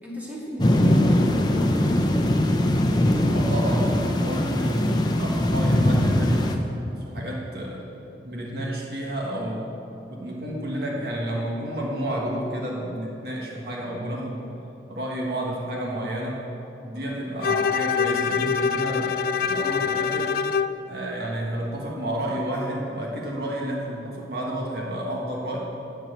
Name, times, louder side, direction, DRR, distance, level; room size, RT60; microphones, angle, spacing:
voice 1, 0.0-2.0 16.9-17.1, equal, 10° right, -7 dB, 2.6 m, -35 dB
sound 1, 0.6-6.6, left 1 dB, 25° left, 0.7 m, -21 dB
voice 2, 3.3-6.5 7.0-7.9 8.2-9.8 10.1-14.5 14.9-16.4 16.8-19.2 19.4-20.3 20.9-25.7, right 1 dB, 65° right, -3 dB, 1.7 m, -30 dB
Bowed string instrument, 17.4-20.8, left 6 dB, 55° left, 0.3 m, -24 dB
14.0 x 4.6 x 8.8 m, 3.0 s
head